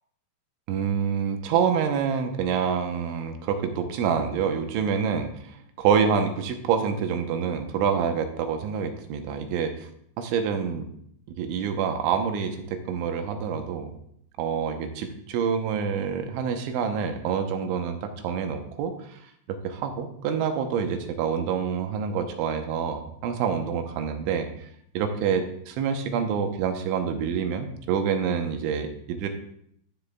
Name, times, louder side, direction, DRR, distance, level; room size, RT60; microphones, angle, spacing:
voice 1, 0.7-9.7 10.2-10.9 11.4-13.9 14.4-19.2 19.5-24.5 24.9-29.3, right 7 dB, 85° right, 5 dB, 3.2 m, -27 dB
14.0 x 10.5 x 2.3 m, 0.69 s
omnidirectional pair, 5.4 m